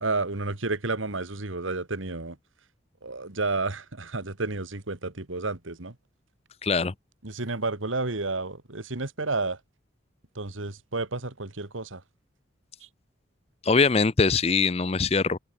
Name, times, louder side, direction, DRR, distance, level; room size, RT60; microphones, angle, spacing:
voice 1, 0.0-2.4 3.0-6.0 7.2-9.6 10.4-12.0, right 3 dB, 80° right, 2.0 m, -31 dB
voice 2, 6.6-6.9 13.6-15.4, left 4 dB, 30° left, 0.5 m, -22 dB
head